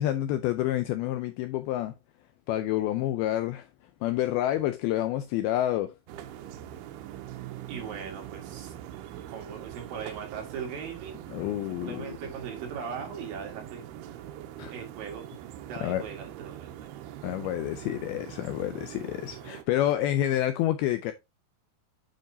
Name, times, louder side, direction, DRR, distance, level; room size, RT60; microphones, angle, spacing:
voice 1, 0.0-2.0 2.5-3.7 4.0-6.0 11.3-12.1 14.6-14.7 15.8-16.0 17.2-21.1, left 13 dB, 85° left, 2.2 m, -28 dB
sound 1, 6.1-19.6, right 12 dB, 80° right, 2.6 m, -43 dB
voice 2, 7.7-8.7 9.3-11.3 11.7-14.2 14.7-15.2 15.6-16.7, right 6 dB, 65° right, 3.3 m, -39 dB
9.0 x 5.3 x 2.7 m
omnidirectional pair, 4.8 m